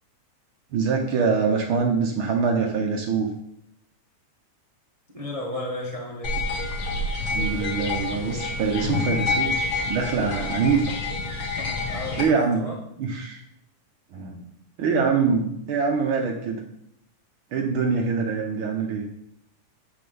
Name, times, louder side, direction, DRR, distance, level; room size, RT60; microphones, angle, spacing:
voice 1, 0.7-3.3 7.3-9.6 9.9-10.9 12.2-12.6 13.0-13.4 14.1-14.4 14.8-16.6 17.5-19.0, right 5 dB, 65° right, 2 dB, 1.3 m, -24 dB
voice 2, 5.1-6.4 11.9-12.8, left 1 dB, 30° right, -4 dB, 0.6 m, -33 dB
sound 1, 6.2-12.2, left 3 dB, 45° left, 1.5 m, -28 dB
9.8 x 3.8 x 7.0 m, 0.76 s
omnidirectional pair, 3.6 m